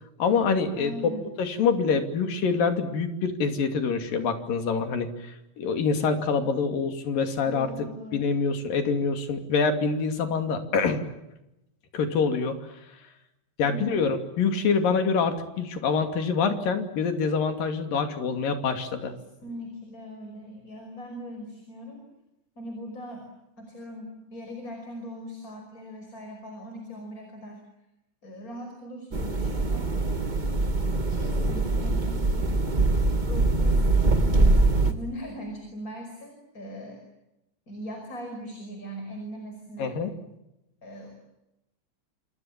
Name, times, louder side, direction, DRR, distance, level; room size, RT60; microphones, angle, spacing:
voice 1, 0.2-1.1 1.4-7.7 8.1-11.0 11.9-12.6 13.6-19.1 39.8-40.1, left 5 dB, 70° left, 7 dB, 4.3 m, -25 dB
voice 2, 0.8-1.3 7.4-8.2 13.6-14.1 19.4-22.0 22.6-23.3 23.6-27.6 28.2-30.0 31.1-32.5 33.1-33.9 34.2-37.0 37.7-39.9 40.8-41.1, equal, 20° left, 4 dB, 5.6 m, -40 dB
sound 1, 29.1-34.9, right 2 dB, 85° right, 0.4 m, -23 dB
28.0 x 27.0 x 7.3 m, 0.91 s
omnidirectional pair, 4.1 m